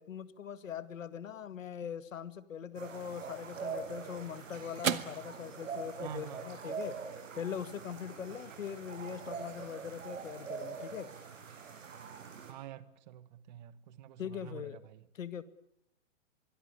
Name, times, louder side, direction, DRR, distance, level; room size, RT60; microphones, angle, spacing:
voice 1, 0.0-7.0 7.3-11.1 14.2-15.4, left 8 dB, 80° left, 2.2 m, -41 dB
sound 1, 2.7-12.5, right 5 dB, 70° right, 7.9 m, -44 dB
sound 2, 3.5-12.1, right 8 dB, 90° right, 1.9 m, -44 dB
voice 2, 6.0-6.7 12.5-15.0, right 11 dB, 35° right, 1.6 m, -48 dB
25.0 x 23.5 x 9.7 m
hypercardioid pair, 160°, 39 cm